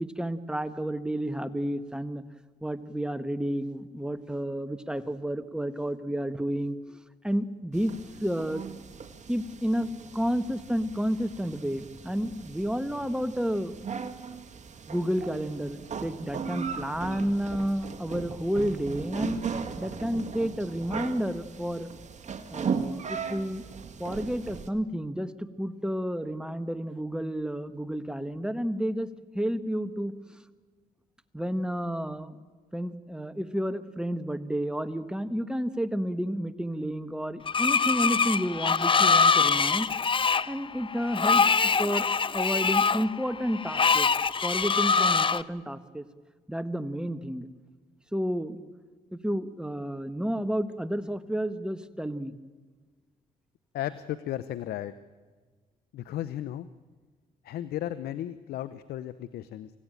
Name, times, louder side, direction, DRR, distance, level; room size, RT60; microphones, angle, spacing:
voice 1, 0.0-2.2 2.6-7.9 8.2-8.6 9.3-13.7 14.9-19.4 19.8-21.9 22.5-23.6 24.0-29.1 29.3-30.1 31.3-32.4 32.7-39.9 40.5-41.4 41.8-42.1 42.3-44.1 44.4-46.0 46.5-47.5 48.1-48.6 49.1-52.3, equal, 5° right, 11 dB, 1.4 m, -31 dB
sound 1, 7.7-24.7, right 6 dB, 50° right, 2.0 m, -38 dB
Screech, 37.5-45.4, left 5 dB, 35° left, 0.7 m, -24 dB
voice 2, 53.7-54.9 55.9-56.7 57.4-59.7, left 12 dB, 85° left, 14 dB, 0.7 m, -35 dB
24.5 x 16.5 x 9.1 m, 1.4 s
supercardioid pair, 65°, 16 cm